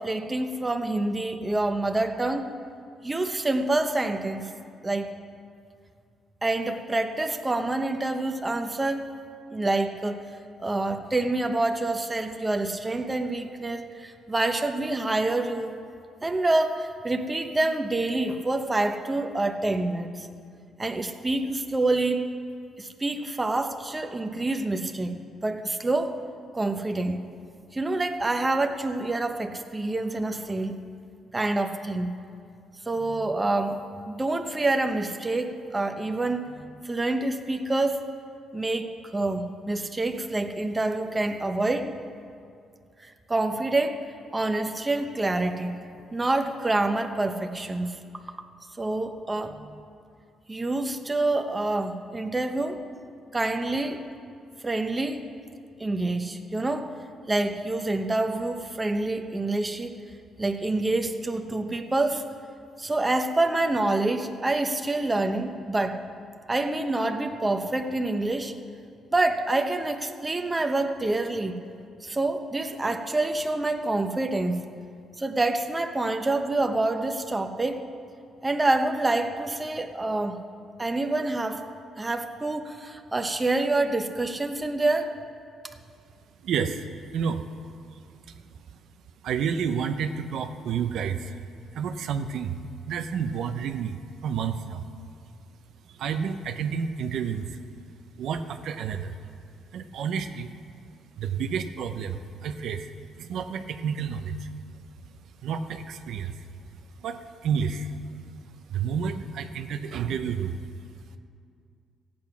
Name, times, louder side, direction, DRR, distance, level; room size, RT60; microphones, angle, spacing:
voice 1, 0.0-2.5 3.0-4.5 4.8-5.1 6.4-9.1 9.5-10.2 10.6-15.8 16.2-20.3 20.8-22.2 22.8-26.2 26.5-27.2 27.7-30.8 31.3-32.1 32.9-33.8 34.1-36.5 36.8-38.1 38.5-41.9 43.0-44.0 44.3-45.8 46.1-48.0 48.8-49.6 50.5-52.8 53.3-54.0 54.6-55.3 55.8-56.9 57.3-60.0 60.4-62.2 62.8-66.0 66.5-68.5 69.1-71.6 72.0-74.6 75.2-77.8 78.4-80.4 80.8-81.6 82.0-85.1, right 2 dB, 20° right, 5 dB, 1.0 m, -27 dB
voice 2, 86.4-86.8 87.1-87.4 89.2-91.4 91.7-92.6 92.9-94.9 96.0-97.6 98.2-99.2 99.7-100.5 101.2-102.9 103.2-104.5 105.4-106.4 107.0-107.9 108.7-110.6, right 7 dB, 75° right, 7 dB, 0.7 m, -30 dB
14.5 x 8.8 x 5.9 m, 2.3 s
cardioid pair, 90°, 0 cm